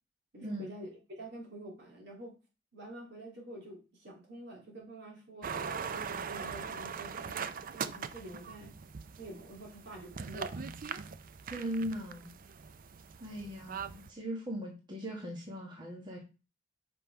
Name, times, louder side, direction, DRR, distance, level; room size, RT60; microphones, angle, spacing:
voice 1, 0.3-0.9 1.1-2.3 2.7-5.5 5.9-8.7 9.2-10.6, right 1 dB, 65° right, -2 dB, 3.2 m, -47 dB
sound 1, 5.4-14.1, right 6 dB, 45° right, 0.5 m, -41 dB
voice 2, 11.5-12.3 13.2-16.2, equal, 25° right, -2 dB, 1.5 m, -39 dB
6.1 x 5.5 x 4.8 m, 0.32 s
head